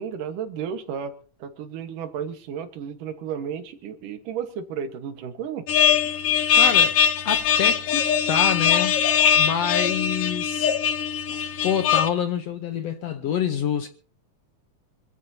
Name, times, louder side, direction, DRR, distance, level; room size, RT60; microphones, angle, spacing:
voice 1, 0.0-5.7, right 7 dB, 75° right, 3.0 m, -33 dB
sound 1, 5.7-12.1, left 7 dB, 80° left, 1.3 m, -21 dB
voice 2, 6.5-6.9 7.2-9.0 9.3-10.7 11.6-13.9, left 8 dB, 65° left, 1.7 m, -27 dB
26.0 x 15.0 x 2.8 m
omnidirectional pair, 3.8 m